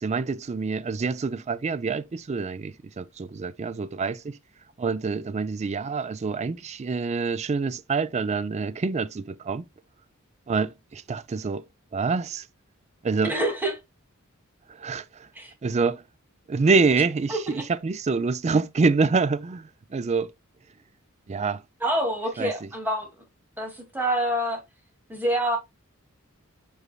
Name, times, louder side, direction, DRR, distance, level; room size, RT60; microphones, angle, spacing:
voice 1, 0.0-4.4 4.8-9.7 10.5-11.6 11.9-12.5 13.0-13.3 14.7-15.3 15.6-16.0 16.5-20.3 21.3-21.6 22.4-22.5, right 4 dB, 30° right, 0.4 m, -26 dB
voice 2, 13.2-13.7 15.4-15.5 17.3-17.6 21.8-23.1 23.6-24.6 25.1-25.6, right 1 dB, 10° right, 2.3 m, -26 dB
8.1 x 5.4 x 2.3 m
head